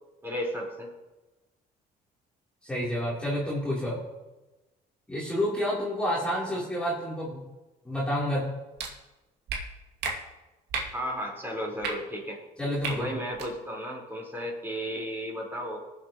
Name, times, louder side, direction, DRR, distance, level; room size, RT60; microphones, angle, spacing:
voice 1, 0.2-0.9 10.9-12.4 12.9-15.8, equal, 15° right, -3 dB, 4.4 m, -34 dB
voice 2, 2.6-4.0 5.1-7.4 7.8-8.5 12.6-13.1, equal, 5° left, -8 dB, 3.4 m, -29 dB
sound 1, 8.8-8.9 9.5-9.6 10.0-10.1 10.7-10.9 11.8-11.9 12.8-12.9 13.3-13.5, right 4 dB, 80° right, 2.4 m, -31 dB
20.0 x 8.0 x 3.0 m, 1.1 s
cardioid pair, 110°, 17 cm